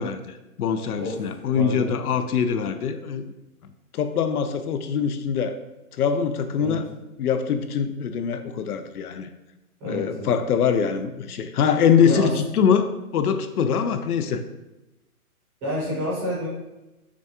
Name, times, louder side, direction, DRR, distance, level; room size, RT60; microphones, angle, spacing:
voice 1, 0.0-3.3 3.9-5.6 6.0-6.9 7.2-9.3 9.9-14.4, left 7 dB, 80° left, 9 dB, 0.5 m, -23 dB
voice 2, 1.5-2.0 6.5-6.8 9.8-10.4 12.0-12.4 15.6-16.5, equal, 10° right, -9 dB, 0.6 m, -29 dB
6.1 x 2.3 x 2.8 m, 0.99 s
hypercardioid pair, 160°, 45 cm